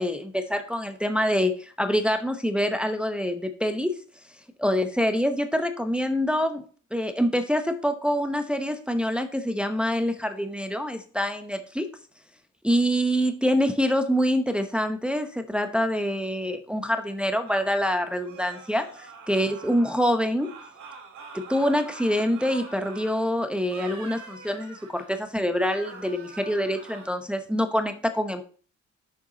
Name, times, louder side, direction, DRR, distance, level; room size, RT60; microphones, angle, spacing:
voice 1, 0.0-4.0 4.6-6.6 6.9-11.9 12.6-20.5 21.3-28.4, equal, 5° right, 7 dB, 0.8 m, -25 dB
sound 1, 17.4-20.1 20.4-23.3 23.6-25.2 25.6-27.1, right 4 dB, 70° right, 2.7 m, -44 dB
6.7 x 5.9 x 3.8 m, 0.41 s
cardioid pair, 90°, 30 cm